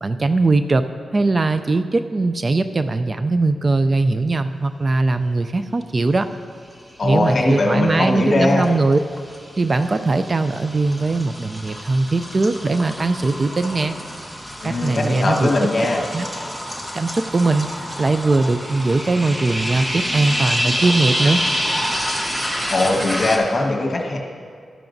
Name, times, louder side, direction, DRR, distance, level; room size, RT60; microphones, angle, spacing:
voice 1, 0.0-0.8 1.1-6.3 7.0-9.0 9.6-14.0 14.6-15.5 16.1-16.3 16.9-21.4, right 3 dB, 35° right, 10 dB, 0.3 m, -20 dB
voice 2, 7.0-8.7 14.6-16.0 22.7-24.2, left 2 dB, 40° left, 0 dB, 1.4 m, -20 dB
sound 1, 7.0-7.5 7.9-23.4, equal, 10° right, 1.1 m, -28 dB
12.0 x 10.5 x 2.6 m, 2.1 s
wide cardioid pair, 110°, 0 cm